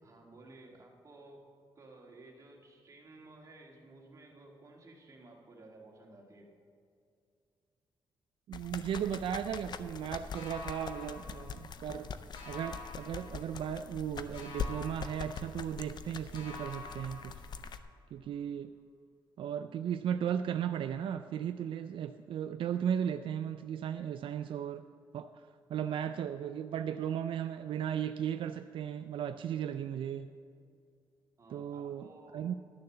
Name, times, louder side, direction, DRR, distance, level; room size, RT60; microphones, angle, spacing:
voice 1, 0.0-1.4 1.8-6.5 31.4-32.6, right 2 dB, 40° right, 0 dB, 2.0 m, -55 dB
sound 1, 8.5-17.8, left 6 dB, 55° left, 0.5 m, -43 dB
voice 2, 8.5-12.1 12.5-17.4 18.1-18.7 19.4-24.8 25.1-30.3 31.5-32.1 32.3-32.5, right 9 dB, 75° right, 9 dB, 0.3 m, -36 dB
sound 2, 10.3-12.0 12.3-14.0 14.3-16.0 16.3-18.0, left 4 dB, 80° left, 2.4 m, -49 dB
11.5 x 6.7 x 6.7 m, 2.4 s
cardioid pair, 125°, 9 cm